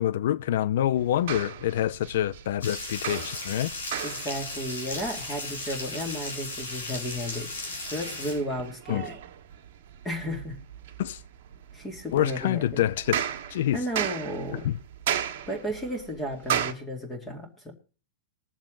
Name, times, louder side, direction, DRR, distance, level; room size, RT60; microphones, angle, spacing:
voice 1, 0.0-3.7 8.9-9.1 11.0-11.2 12.1-13.3 13.5-13.8 14.6-14.7, left 12 dB, 65° left, 0.6 m, -26 dB
sound 1, 1.0-16.7, right 10 dB, 60° right, 1.4 m, -36 dB
sound 2, 2.6-8.3, left 2 dB, 90° left, 6.7 m, -36 dB
voice 2, 4.0-7.5 7.8-9.2 10.0-10.6 11.7-12.9 13.7-14.7 15.5-17.7, equal, 15° left, 2.5 m, -33 dB
20.5 x 7.2 x 3.9 m
hypercardioid pair, 130°, 0 cm